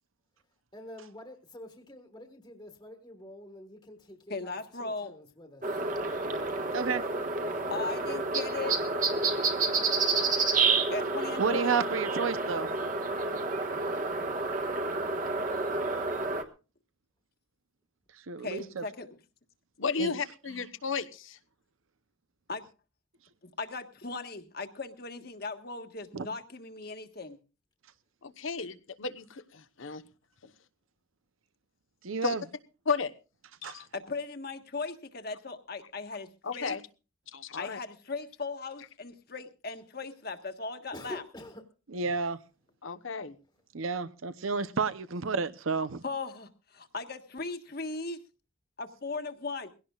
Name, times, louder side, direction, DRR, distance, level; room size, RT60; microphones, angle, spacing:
voice 1, 0.7-5.6 16.3-16.4 40.9-41.6, left 1 dB, 20° left, 1.5 m, -47 dB
voice 2, 4.3-5.2 7.7-8.8 10.9-11.8 18.4-19.1 22.5-22.6 23.6-27.4 33.8-36.8 37.6-41.2 46.0-48.2 48.8-49.7, left 3 dB, 50° left, 1.5 m, -38 dB
sound 1, 5.6-16.4, right 3 dB, 40° right, 1.4 m, -29 dB
voice 3, 11.4-12.7 18.3-18.8 20.0-20.1 26.1-26.3 32.0-32.4 33.6-33.8 41.9-42.4 43.7-46.0, right 5 dB, 85° right, 0.7 m, -31 dB
voice 4, 19.8-21.4 28.2-30.0 30.4-30.5 32.2-32.4 32.9-33.1 33.6-33.9 36.4-36.8 37.3-37.8 42.8-43.3, left 4 dB, 80° left, 1.1 m, -33 dB
22.0 x 17.0 x 2.4 m
head